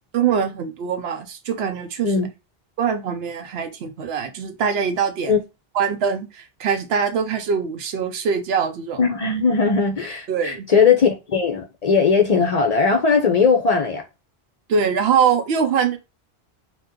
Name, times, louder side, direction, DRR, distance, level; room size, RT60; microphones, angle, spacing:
voice 1, 0.1-2.1 2.8-5.3 5.7-9.0 10.3-10.7 14.7-16.0, right 6 dB, 80° right, 0.9 m, -23 dB
voice 2, 9.0-14.0, left 5 dB, 50° left, 0.5 m, -18 dB
2.7 x 2.2 x 3.5 m
omnidirectional pair, 1.1 m